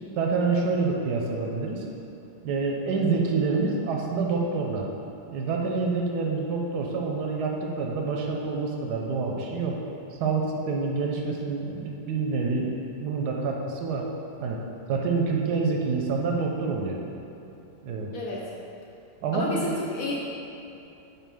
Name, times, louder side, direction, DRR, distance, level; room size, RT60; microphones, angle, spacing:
voice 1, 0.2-1.8 2.4-4.9 5.3-9.8 10.1-12.7 13.0-14.0 14.4-14.6 14.9-17.0 17.8-18.1 19.2-19.8, right 4 dB, 75° right, 0 dB, 1.1 m, -27 dB
voice 2, 18.1-18.4 19.3-20.2, left 2 dB, 65° left, -4 dB, 0.9 m, -30 dB
5.8 x 4.7 x 3.5 m, 2.9 s
omnidirectional pair, 1.9 m